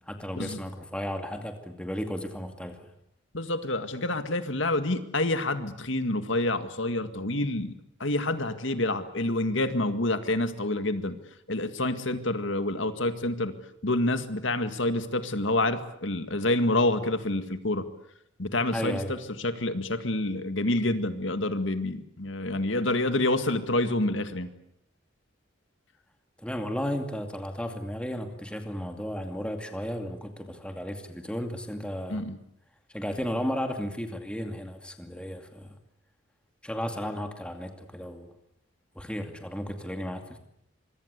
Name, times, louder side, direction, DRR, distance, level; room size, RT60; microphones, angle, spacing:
voice 1, 0.1-2.8 18.7-19.2 26.4-32.2 32.9-35.8 36.6-38.3 39.0-40.4, equal, 5° left, 5 dB, 2.4 m, -34 dB
voice 2, 3.3-7.7 8.0-11.2 11.5-13.5 13.8-17.9 18.4-24.5 32.1-32.4, left 2 dB, 70° left, 9 dB, 2.0 m, -28 dB
25.5 x 23.5 x 8.3 m, 0.76 s
head